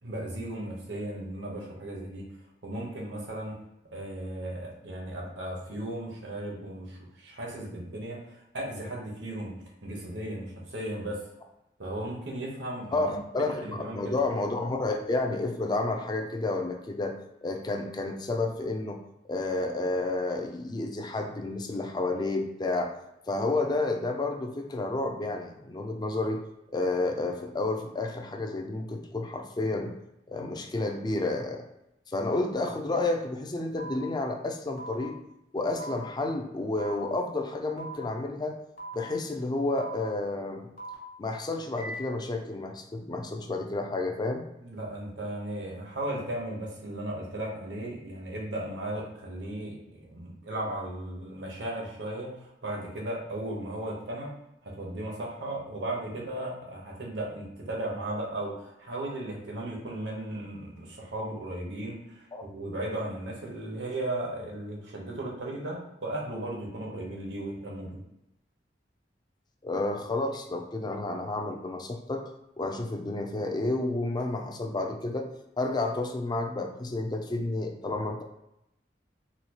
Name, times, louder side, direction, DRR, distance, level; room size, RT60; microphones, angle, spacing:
voice 1, 0.0-2.2 2.6-3.6 3.9-9.5 9.8-11.2 11.8-14.2 44.6-54.3 54.6-68.0, right 1 dB, 80° right, -2 dB, 1.0 m, -36 dB
voice 2, 12.9-17.2 17.4-19.0 19.3-22.9 23.3-26.4 26.7-29.9 30.3-31.6 32.1-35.2 35.5-38.6 38.9-40.7 41.2-44.4 62.3-62.4 69.6-72.2 72.6-75.3 75.6-78.2, left 2 dB, 25° left, 4 dB, 0.4 m, -30 dB
sound 1, 33.8-33.9 34.8-34.9 35.8-36.0 36.8-37.0 37.8-38.0 38.8-39.0 39.8-39.9 40.8-40.9 41.8-41.9, right 3 dB, 55° left, 1.4 m, -39 dB
4.2 x 2.3 x 2.9 m, 0.86 s
head